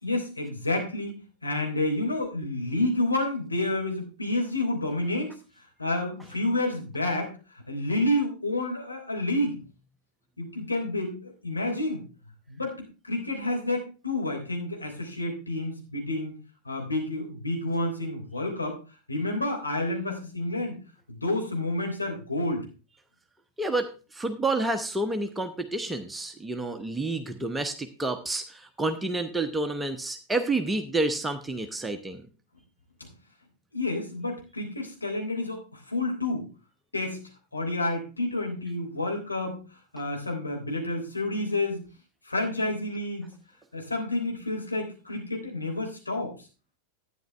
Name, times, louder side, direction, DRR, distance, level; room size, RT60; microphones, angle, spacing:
voice 1, 0.0-5.3 5.8-9.6 10.4-12.0 12.5-12.8 13.0-16.3 16.6-18.8 19.1-20.8 21.1-22.6 33.0-33.1 33.7-36.5 36.9-37.2 37.5-39.6 39.9-41.8 42.2-43.3 43.7-46.3, left 2 dB, 80° left, 1 dB, 3.3 m, -29 dB
voice 2, 23.6-32.2, right 2 dB, 10° right, 5 dB, 0.9 m, -29 dB
12.0 x 9.4 x 3.4 m, 0.32 s
figure-of-eight pair, 90°, 0 cm